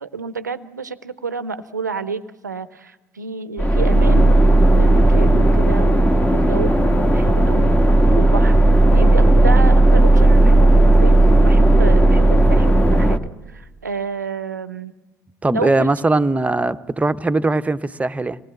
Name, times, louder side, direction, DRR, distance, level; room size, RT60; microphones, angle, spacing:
voice 1, 0.0-4.4 4.7-8.6 8.9-13.2 13.5-14.9 15.5-15.9, right 4 dB, 90° right, 0.7 m, -30 dB
sound 1, 3.6-13.2, right 1 dB, 15° left, 1.4 m, -13 dB
voice 2, 15.4-18.4, right 2 dB, 15° right, 0.9 m, -20 dB
26.0 x 19.0 x 7.9 m
figure-of-eight pair, 55°, 9 cm